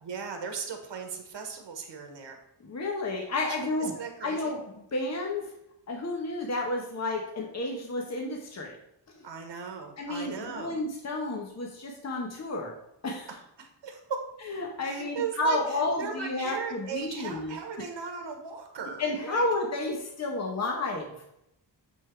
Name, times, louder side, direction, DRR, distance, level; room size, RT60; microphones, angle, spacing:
voice 1, 0.0-2.4 3.5-4.5 9.2-10.8 13.3-14.2 14.8-19.4, right 6 dB, 70° right, 4 dB, 1.4 m, -37 dB
voice 2, 2.6-3.9 4.2-4.6 4.9-5.5 5.9-8.8 9.1-9.2 10.0-12.7 13.0-13.3 14.5-17.6 19.0-21.3, left 2 dB, 35° left, 1 dB, 1.1 m, -31 dB
8.8 x 3.9 x 4.5 m, 0.81 s
wide cardioid pair, 140°, 44 cm